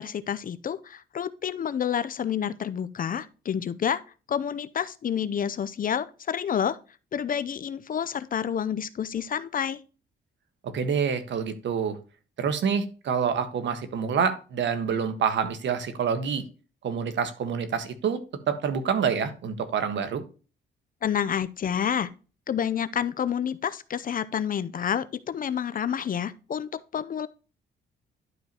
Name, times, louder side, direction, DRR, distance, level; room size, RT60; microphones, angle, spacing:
voice 1, 0.0-4.0 4.3-6.8 7.1-9.8 21.0-22.1 22.5-27.3, left 8 dB, 45° left, 0.6 m, -29 dB
voice 2, 10.6-12.0 12.4-16.4 16.8-20.2, right 6 dB, 65° right, 1.5 m, -27 dB
11.5 x 5.2 x 2.9 m
cardioid pair, 90°, 20 cm